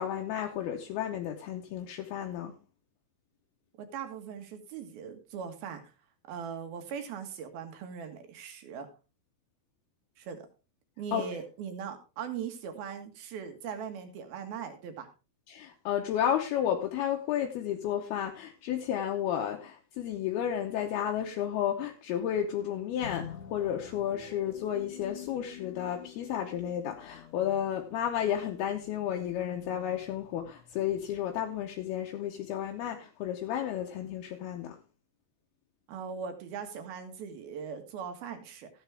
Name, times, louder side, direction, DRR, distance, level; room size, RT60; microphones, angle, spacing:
voice 1, 0.0-2.5 11.1-11.3 15.5-34.8, left 10 dB, 75° left, 2.7 m, -32 dB
voice 2, 3.8-5.8 6.3-8.9 10.2-10.5 11.0-15.1 35.9-38.7, right 7 dB, 65° right, 3.4 m, -40 dB
sound 1, 23.0-31.8, left 8 dB, 60° left, 1.8 m, -48 dB
14.0 x 9.4 x 3.5 m
omnidirectional pair, 4.8 m